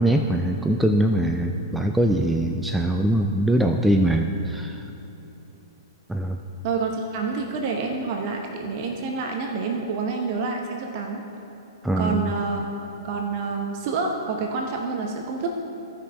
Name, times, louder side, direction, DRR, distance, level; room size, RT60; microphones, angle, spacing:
voice 1, 0.0-4.8 6.1-6.4 11.8-12.3, right 1 dB, 5° right, 4 dB, 0.4 m, -22 dB
voice 2, 6.6-11.2 12.0-12.7 13.0-15.5, right 4 dB, 45° right, 2 dB, 0.9 m, -28 dB
15.5 x 5.6 x 3.4 m, 2.9 s
hypercardioid pair, 115°, 2 cm